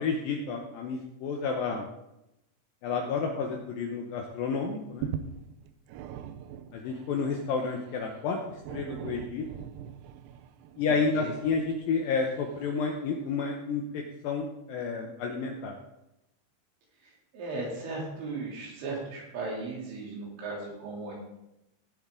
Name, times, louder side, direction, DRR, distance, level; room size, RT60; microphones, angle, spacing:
voice 1, 0.0-1.9 2.8-5.1 6.7-8.4 8.7-9.5 10.8-15.8, left 5 dB, 85° left, 1 dB, 2.0 m, -30 dB
sound 1, 4.1-4.3 4.7-13.3 13.9-14.0, right 9 dB, 85° right, 2.3 m, -42 dB
voice 2, 10.9-11.4 17.0-21.1, right 3 dB, 70° right, -3 dB, 5.3 m, -37 dB
18.5 x 7.3 x 3.8 m, 0.88 s
omnidirectional pair, 5.5 m